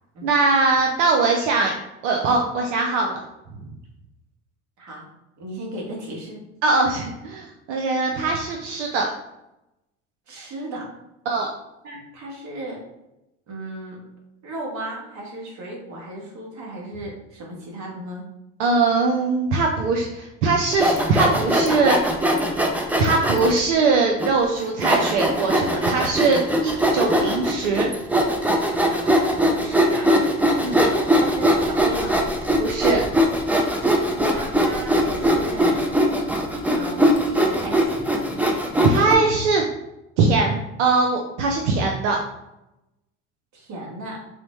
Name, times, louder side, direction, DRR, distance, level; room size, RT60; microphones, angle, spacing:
voice 1, 0.2-1.7 2.0-3.2 6.6-9.1 11.3-11.5 18.6-22.1 23.0-27.9 30.6-30.9 32.6-33.0 38.8-39.6 40.2-42.2, right 3 dB, 85° right, 1 dB, 0.5 m, -21 dB
voice 2, 4.8-5.1 5.4-6.4 10.3-10.9 11.8-12.8 13.5-14.0 14.4-18.2 28.9-30.1 31.1-32.2 34.2-35.8 36.7-38.3 43.5-44.2, right 1 dB, 50° right, -1 dB, 1.3 m, -36 dB
Sawing, 20.7-23.6 24.2-24.3 24.8-39.1, equal, 5° right, 0.4 m, -21 dB
4.1 x 2.0 x 3.0 m, 0.90 s
hypercardioid pair, 75°, 36 cm